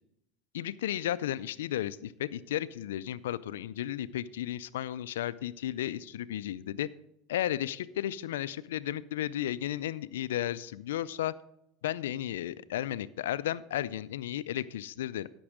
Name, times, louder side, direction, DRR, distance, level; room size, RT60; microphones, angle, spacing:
voice 1, 0.5-6.9 7.3-11.3 11.8-15.3, left 12 dB, 85° left, 16 dB, 0.4 m, -34 dB
12.5 x 6.1 x 4.9 m, 0.81 s
hypercardioid pair, 95°, 0 cm